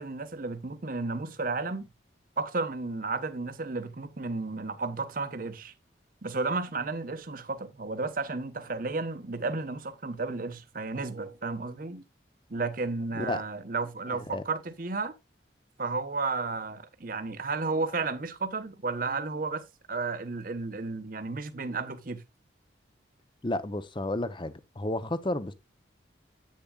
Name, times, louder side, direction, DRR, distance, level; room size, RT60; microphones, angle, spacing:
voice 1, 0.0-1.9 2.4-5.7 6.2-12.0 12.5-15.1 15.8-19.6 19.9-22.2, right 3 dB, 45° right, 1.0 m, -33 dB
voice 2, 14.1-14.4 23.4-25.5, left 1 dB, 25° left, 0.7 m, -32 dB
10.5 x 8.6 x 2.4 m
head